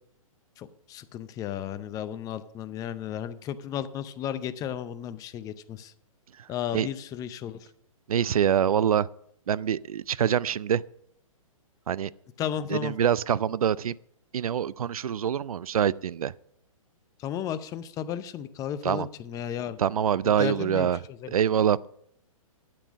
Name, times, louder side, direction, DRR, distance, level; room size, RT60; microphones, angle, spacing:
voice 1, 0.6-5.9 6.5-7.7 12.4-13.0 17.2-19.8 20.2-21.3, left 9 dB, 20° left, 0.6 m, -34 dB
voice 2, 8.1-9.1 9.5-10.8 11.9-12.1 12.7-13.9 14.3-16.3 18.8-19.1 19.8-21.0 21.3-21.9, right 9 dB, 80° right, 0.4 m, -25 dB
12.0 x 8.2 x 5.2 m
hypercardioid pair, 130°, 18 cm